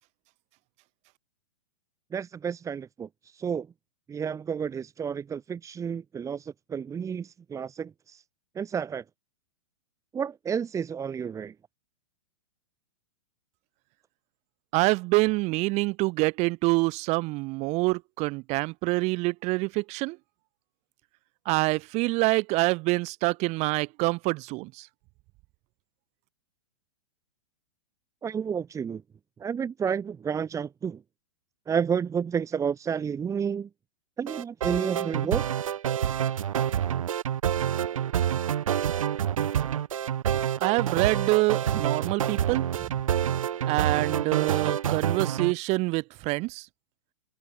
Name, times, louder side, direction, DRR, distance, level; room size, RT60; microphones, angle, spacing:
voice 1, 2.1-3.7 4.1-8.2 8.6-9.0 10.1-11.5 28.2-29.0 29.4-31.0 31.7-33.7 34.2-35.4, right 7 dB, 20° right, 2.7 m, -31 dB
voice 2, 14.7-20.2 21.5-24.9 40.6-42.7 43.7-46.7, right 24 dB, 40° right, 5.4 m, -26 dB
sound 1, 34.3-45.5, right 9 dB, 75° right, 0.8 m, -27 dB
open air
hypercardioid pair, 110°, 17 cm